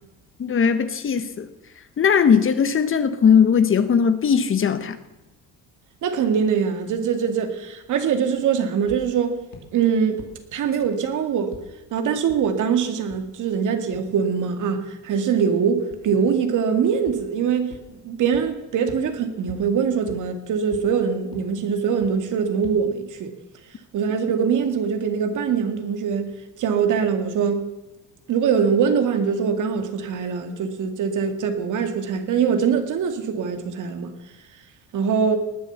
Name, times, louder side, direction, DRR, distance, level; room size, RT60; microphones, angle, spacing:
voice 1, 0.4-1.5 2.0-5.0, left 7 dB, 35° left, 1.3 m, -19 dB
voice 2, 6.0-9.4 9.7-10.2 10.5-11.5 11.9-23.3 23.9-26.3 26.6-27.6 28.3-34.1 34.9-35.4, right 6 dB, 60° right, 2.3 m, -23 dB
sound 1, 8.9-9.0 9.5-9.6 10.2-10.3 10.8-10.9 11.5-11.6 12.3-12.4 13.1-13.2 13.9-14.0 15.9-16.0 17.1-17.2 17.7-17.8 18.3-18.4 18.9-19.0 19.5-19.6 20.1-20.2 20.7-20.8 21.3-21.4 22.0-22.1 22.6-22.7, left 8 dB, 80° left, 2.8 m, -40 dB
19.0 x 9.2 x 7.2 m
cardioid pair, 100°, 34 cm